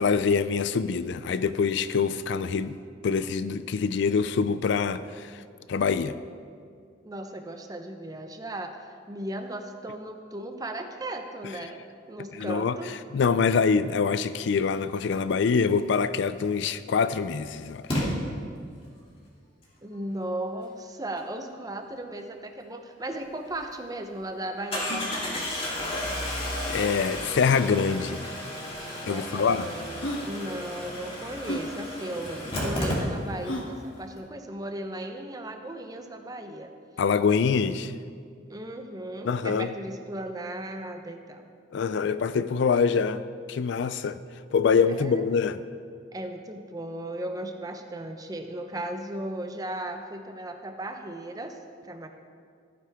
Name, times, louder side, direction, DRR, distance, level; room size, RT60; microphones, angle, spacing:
voice 1, 0.0-2.8 3.0-5.4 5.7-6.1 12.4-18.1 26.2-28.4 29.0-29.7 37.0-37.9 39.2-39.7 41.7-43.2 43.5-44.2 44.5-45.6, left 5 dB, 65° left, 13 dB, 0.4 m, -25 dB
voice 2, 7.0-8.7 9.1-11.8 12.1-12.9 19.8-25.5 29.1-36.7 38.5-41.5 44.9-45.2 46.1-51.6 51.8-52.1, right 1 dB, 20° right, 5 dB, 0.7 m, -36 dB
Engine starting, 16.4-16.5 17.9-18.0 23.1-23.2 23.6-23.7 24.7-33.5 33.8-33.9 34.1-34.2, left 1 dB, 30° left, 2.6 m, -32 dB
sound 1, 23.2-23.3 23.5-23.6 24.1-24.2 24.7-25.1 26.4-26.5 27.4-27.8 28.7-28.8 29.6-29.7 30.0-30.3 31.4-31.7 33.4-33.8, left 1 dB, 85° left, 1.3 m, -34 dB
14.5 x 9.3 x 3.5 m, 2.2 s
head